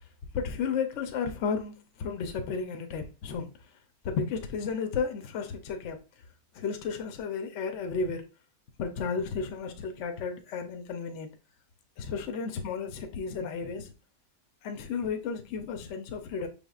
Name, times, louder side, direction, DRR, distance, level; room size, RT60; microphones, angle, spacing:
voice 1, 0.3-3.5 4.0-6.0 6.6-8.2 8.8-11.3 12.0-13.9 14.6-16.5, left 5 dB, 60° left, 0.9 m, -33 dB
5.7 x 3.5 x 2.4 m
omnidirectional pair, 1.6 m